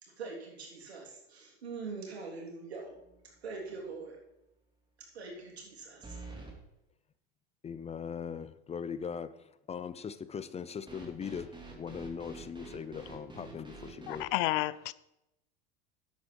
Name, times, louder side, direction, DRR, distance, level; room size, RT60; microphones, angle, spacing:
voice 1, 0.0-2.9 3.4-4.2 5.1-6.2, right 4 dB, 90° right, 3.4 m, -43 dB
sound 1, 2.9-3.4 3.7-3.8 6.0-6.6 10.9-14.3, right 3 dB, 15° right, 3.0 m, -47 dB
voice 2, 7.6-14.3, left 7 dB, 20° left, 0.6 m, -40 dB
voice 3, 14.1-14.9, left 18 dB, 60° left, 0.6 m, -31 dB
11.0 x 8.3 x 4.7 m
hypercardioid pair, 90°, 31 cm